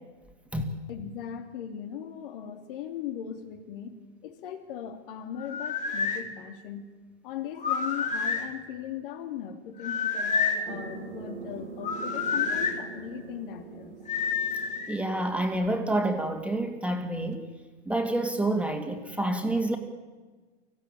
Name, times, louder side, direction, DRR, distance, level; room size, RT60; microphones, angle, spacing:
voice 1, 0.9-6.8 7.2-14.0, left 9 dB, 50° left, 6 dB, 3.0 m, -39 dB
sound 1, 5.4-6.2 7.6-8.5 9.8-10.7 11.8-12.8 14.1-15.0, left 5 dB, 20° left, 2.7 m, -28 dB
sound 2, 10.6-17.8, right 5 dB, 90° right, 2.7 m, -44 dB
voice 2, 14.9-17.4 17.9-19.8, right 1 dB, 5° right, 4 dB, 2.6 m, -28 dB
25.5 x 15.5 x 8.9 m, 1.3 s
figure-of-eight pair, 105°, 34 cm